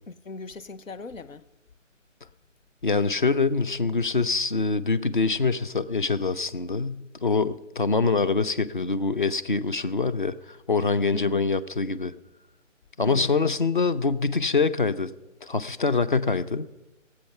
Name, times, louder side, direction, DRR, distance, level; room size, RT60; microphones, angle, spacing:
voice 1, 0.1-1.5 11.1-11.5 13.0-13.5, left 3 dB, 90° left, 1.0 m, -39 dB
voice 2, 2.8-12.1 13.0-15.1 15.4-16.7, left 4 dB, 40° left, 0.6 m, -25 dB
18.0 x 8.0 x 5.6 m
figure-of-eight pair, 165°, 38 cm